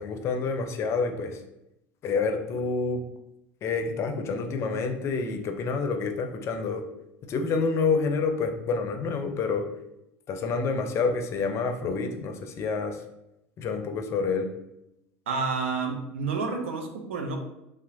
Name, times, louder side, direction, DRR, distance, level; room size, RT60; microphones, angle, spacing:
voice 1, 0.0-1.4 2.0-3.0 3.6-6.8 7.3-9.7 10.3-13.0 13.6-14.5, left 4 dB, 45° left, 6 dB, 0.4 m, -28 dB
voice 2, 15.3-17.4, right 4 dB, 85° right, 4 dB, 0.5 m, -29 dB
2.9 x 2.0 x 2.7 m, 0.87 s
hypercardioid pair, 85°, 7 cm